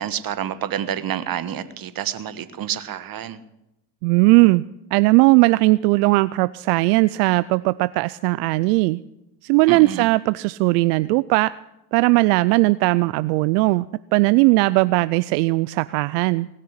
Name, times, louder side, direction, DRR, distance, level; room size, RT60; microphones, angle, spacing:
voice 1, 0.0-3.4 9.7-10.1, right 9 dB, 45° right, 13 dB, 1.4 m, -28 dB
voice 2, 4.0-4.6 4.9-9.0 9.4-11.5 11.9-13.9 14.1-16.5, right 23 dB, 80° right, 16 dB, 0.5 m, -18 dB
19.0 x 6.7 x 9.7 m, 0.89 s
hypercardioid pair, 70°, 46 cm